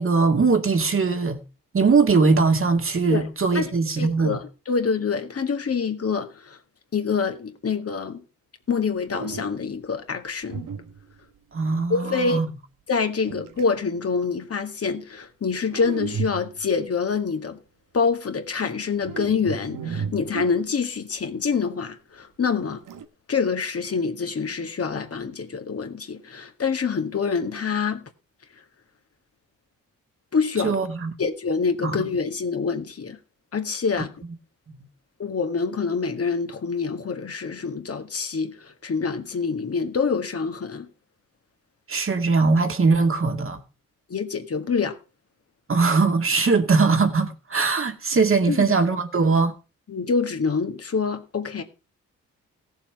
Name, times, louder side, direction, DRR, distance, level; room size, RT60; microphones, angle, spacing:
voice 1, 0.0-1.4 1.7-4.4 11.5-12.5 30.6-31.1 31.8-32.0 34.0-34.1 34.7-34.8 41.9-43.6 45.7-49.5, right 4 dB, 40° right, 2.1 m, -21 dB
voice 2, 4.0-6.6 6.9-8.2 8.7-10.7 11.9-12.4 12.9-17.6 17.9-22.8 23.3-28.0 30.3-30.8 31.2-33.2 33.5-34.1 35.2-40.9 44.1-45.0 48.5-48.6 49.9-51.6, left 5 dB, 45° left, 1.9 m, -26 dB
sound 1, 8.7-8.8 9.1-9.8 10.5-11.4 13.3-13.8 15.7-16.8 18.9-21.1 22.6-23.1, right 6 dB, 70° right, 1.5 m, -34 dB
16.5 x 7.3 x 4.8 m
hypercardioid pair, 50°, 34 cm